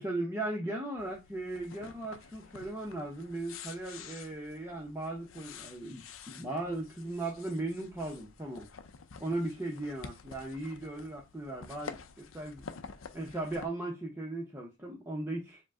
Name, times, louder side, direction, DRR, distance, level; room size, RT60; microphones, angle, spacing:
voice 1, 0.0-8.7 9.2-12.6 13.1-15.6, right 2 dB, 10° right, 0.7 m, -37 dB
sound 1, 1.0-13.7, left 5 dB, 85° left, 0.5 m, -49 dB
5.0 x 2.1 x 3.6 m
head